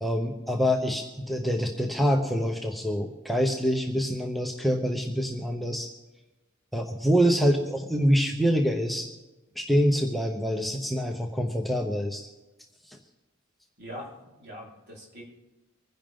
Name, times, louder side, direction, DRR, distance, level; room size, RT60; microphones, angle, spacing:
voice 1, 0.0-5.9 6.7-9.1 9.6-12.3 12.9-13.0, equal, ahead, 2 dB, 0.9 m, -26 dB
voice 2, 13.8-15.2, equal, 55° right, -4 dB, 4.5 m, -42 dB
25.0 x 10.5 x 3.7 m, 1.1 s
head